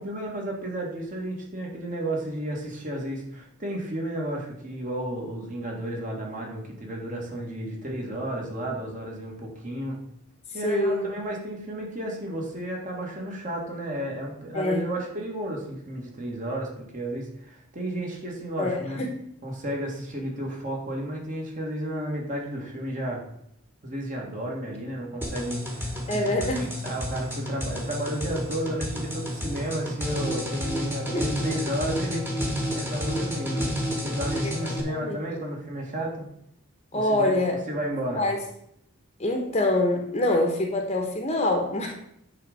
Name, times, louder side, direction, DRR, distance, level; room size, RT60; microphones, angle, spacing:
voice 1, 0.0-10.0 10.5-19.0 19.4-23.2 23.8-32.3 32.7-33.7 34.0-36.3 36.9-37.4 37.7-38.2, right 1 dB, 40° right, -1 dB, 2.2 m, -32 dB
voice 2, 10.6-11.1 14.5-14.9 18.6-19.1 26.1-26.7 31.1-31.2 34.4-34.5 34.9-35.2 36.9-37.6 38.2-38.4 39.2-41.9, left 1 dB, 30° left, 3 dB, 1.0 m, -25 dB
sound 1, 25.2-34.8, equal, 10° right, 1.6 m, -30 dB
9.0 x 3.9 x 6.8 m, 0.74 s
head